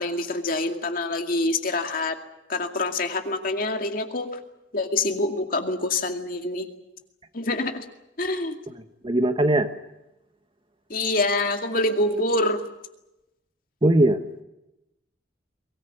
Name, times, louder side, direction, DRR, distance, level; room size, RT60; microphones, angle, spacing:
voice 1, 0.0-2.1 2.5-4.3 4.7-6.7 7.3-7.8 8.2-8.5 10.9-12.6, left 2 dB, 50° left, 5 dB, 2.3 m, -26 dB
voice 2, 9.0-9.7 13.8-14.2, right 1 dB, 30° right, 8 dB, 1.3 m, -19 dB
23.0 x 19.0 x 9.4 m, 0.92 s
head